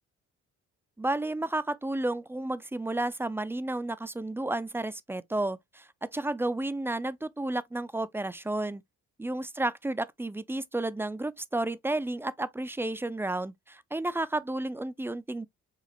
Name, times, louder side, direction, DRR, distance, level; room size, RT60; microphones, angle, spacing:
voice 1, 1.0-8.8 9.2-15.5, right 2 dB, 10° right, 0.4 m, -32 dB
5.0 x 2.8 x 2.8 m
cardioid pair, 90°, 30 cm